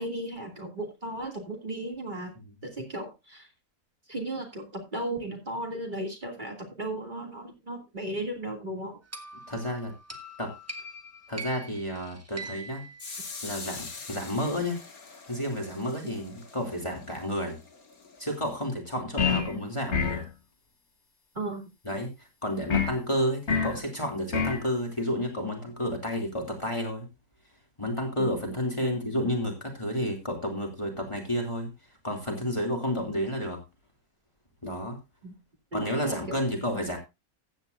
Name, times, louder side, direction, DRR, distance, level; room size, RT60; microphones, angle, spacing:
voice 1, 0.0-2.3 2.6-3.5 4.1-9.0 19.3-19.4 21.3-21.6 28.2-28.3 28.8-28.9 35.2-35.3 35.7-36.5, right 1 dB, 30° right, 1 dB, 2.9 m, -35 dB
sound 1, 9.1-13.9, right 1 dB, 10° right, 1.3 m, -43 dB
voice 2, 9.5-9.9 10.4-10.5 11.3-12.9 13.4-14.8 15.3-17.6 18.2-20.2 21.8-27.1 27.8-31.7 32.0-33.6 34.6-35.0 35.7-37.0, equal, 20° left, 1 dB, 2.8 m, -31 dB
sound 2, 13.0-18.6, left 4 dB, 85° left, 2.4 m, -44 dB
sound 3, 19.2-19.5 19.9-20.3 22.7-23.0 23.5-23.8 24.3-24.6, left 6 dB, 50° left, 1.7 m, -26 dB
15.5 x 9.4 x 2.6 m, 0.25 s
omnidirectional pair, 1.5 m